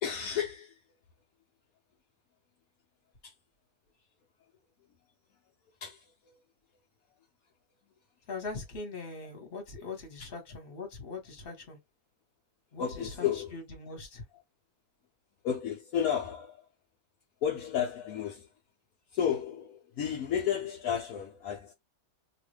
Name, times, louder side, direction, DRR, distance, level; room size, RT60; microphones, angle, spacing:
voice 1, 0.0-0.8 3.2-3.3 5.8-6.4 12.8-13.6 15.4-16.6 17.4-18.5 19.1-21.7, left 8 dB, 70° left, 0.8 m, -32 dB
voice 2, 8.3-11.8 12.7-14.2, left 4 dB, 35° left, 1.2 m, -41 dB
2.9 x 2.4 x 3.1 m
omnidirectional pair, 2.1 m